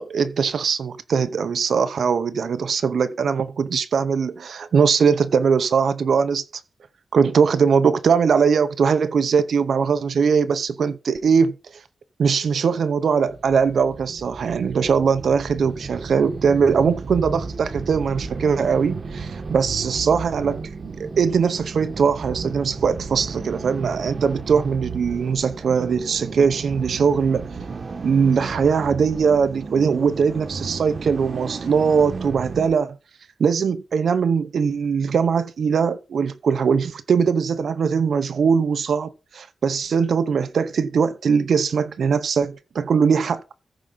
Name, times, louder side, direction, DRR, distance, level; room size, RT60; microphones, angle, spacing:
voice 1, 0.0-6.4 7.1-11.6 12.2-27.5 28.0-33.0 33.4-43.5, right 6 dB, 75° right, 0.8 m, -21 dB
sound 1, 13.3-32.7, right 4 dB, 45° right, 1.2 m, -34 dB
14.5 x 5.0 x 5.7 m
wide cardioid pair, 150°, 0 cm